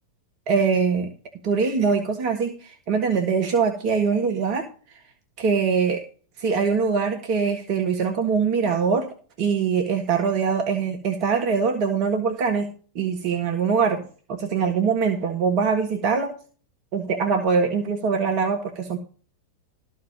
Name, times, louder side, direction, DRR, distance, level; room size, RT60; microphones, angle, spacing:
voice 1, 0.5-1.1 1.4-4.7 5.4-6.0 6.4-9.1 9.4-12.7 12.9-16.3 16.9-19.0, right 5 dB, 45° right, 4 dB, 1.6 m, -23 dB
13.5 x 4.6 x 7.2 m, 0.39 s
figure-of-eight pair, 90°, 0 cm